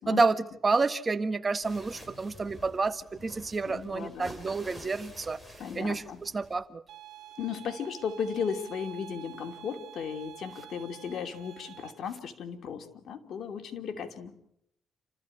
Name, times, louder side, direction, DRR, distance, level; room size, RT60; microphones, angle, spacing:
voice 1, 0.1-5.4 5.7-6.8, right 3 dB, 30° right, 11 dB, 1.5 m, -29 dB
sound 1, 1.6-6.6, equal, 5° left, 6.0 m, -49 dB
voice 2, 3.6-4.3 5.6-6.2 7.4-14.3, left 7 dB, 65° left, 6 dB, 2.8 m, -36 dB
sound 2, 6.9-11.9, right 12 dB, 75° right, 2.6 m, -48 dB
28.5 x 14.5 x 9.9 m, 0.77 s
cardioid pair, 90°, 0 cm